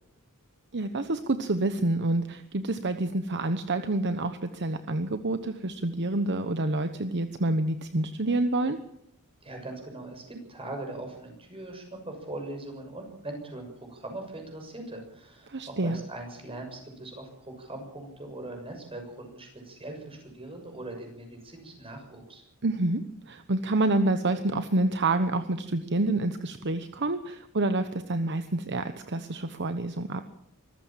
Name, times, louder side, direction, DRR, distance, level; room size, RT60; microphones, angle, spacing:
voice 1, 0.7-8.8 15.5-16.0 22.6-30.2, right 2 dB, 55° right, 9 dB, 1.1 m, -28 dB
voice 2, 9.4-22.4, right 2 dB, 25° right, 4 dB, 6.6 m, -41 dB
24.5 x 15.0 x 7.5 m, 0.76 s
head